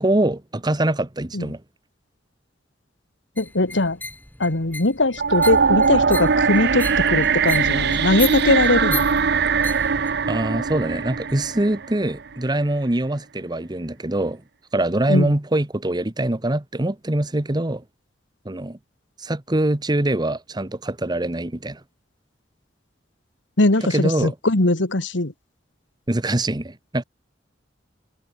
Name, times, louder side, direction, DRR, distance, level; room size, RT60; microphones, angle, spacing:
voice 1, 0.0-1.6 10.3-14.4 14.7-17.8 18.4-18.8 19.2-21.8 23.9-24.3 26.1-27.0, right 1 dB, 25° right, 1.1 m, -23 dB
voice 2, 3.4-4.0 4.4-9.1 15.1-15.3 23.6-25.3, left 2 dB, 85° left, 2.0 m, -20 dB
sound 1, 3.4-10.1, left 3 dB, 10° left, 6.4 m, -36 dB
sound 2, 5.2-12.3, right 5 dB, 65° right, 0.9 m, -21 dB
head